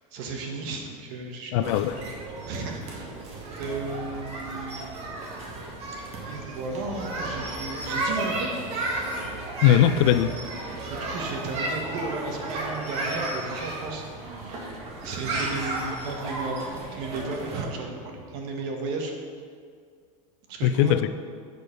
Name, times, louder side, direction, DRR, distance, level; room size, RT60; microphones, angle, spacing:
voice 1, 0.1-1.8 2.5-3.1 3.6-4.9 6.3-8.5 10.9-14.7 15.0-19.1 20.5-21.0, right 3 dB, 55° right, 2 dB, 1.5 m, -34 dB
voice 2, 1.5-2.0 9.6-10.3 20.6-21.2, left 11 dB, 60° left, 13 dB, 0.4 m, -20 dB
sound 1, 1.6-17.6, right 2 dB, 35° right, 1.6 m, -33 dB
8.3 x 6.5 x 5.2 m, 2.1 s
supercardioid pair, 155°, 17 cm